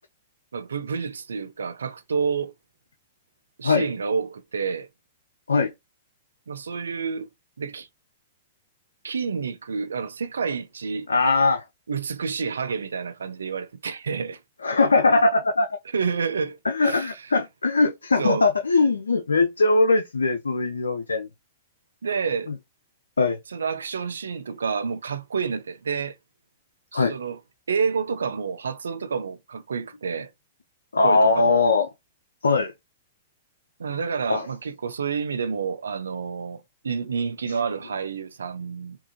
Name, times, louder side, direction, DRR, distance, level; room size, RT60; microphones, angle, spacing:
voice 1, 0.5-2.5 3.6-4.9 6.5-7.3 7.6-7.9 9.0-11.1 11.9-14.4 15.9-17.2 18.2-18.5 22.0-22.5 23.5-26.2 26.9-27.4 27.7-30.3 31.0-31.6 33.8-39.0, right 5 dB, 80° right, 0.4 m, -29 dB
voice 2, 11.1-11.6 14.6-15.7 16.6-21.3 23.2-23.4 26.9-27.2 30.9-31.9 32.4-32.7 34.3-34.5, left 3 dB, 85° left, 0.4 m, -20 dB
3.7 x 2.5 x 2.7 m
hypercardioid pair, 115°, 0 cm